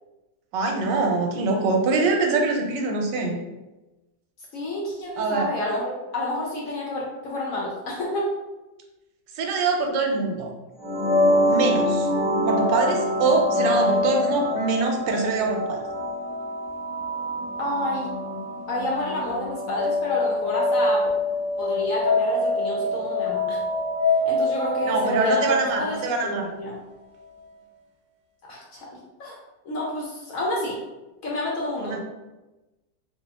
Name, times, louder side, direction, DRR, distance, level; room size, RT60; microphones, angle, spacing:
voice 1, 0.5-3.4 5.2-5.5 9.3-10.5 11.5-12.1 12.5-15.8 24.8-26.5 31.8-32.0, right 3 dB, 85° right, 2 dB, 1.3 m, -24 dB
voice 2, 4.5-8.3 17.6-18.2 18.7-21.0 21.6-23.6 24.3-26.8 28.5-29.4 29.6-30.8 31.2-32.0, left 1 dB, 65° left, -3 dB, 0.9 m, -29 dB
sound 1, 10.8-26.4, left 1 dB, 35° right, 0.9 m, -25 dB
3.0 x 2.8 x 3.3 m, 1.1 s
omnidirectional pair, 1.9 m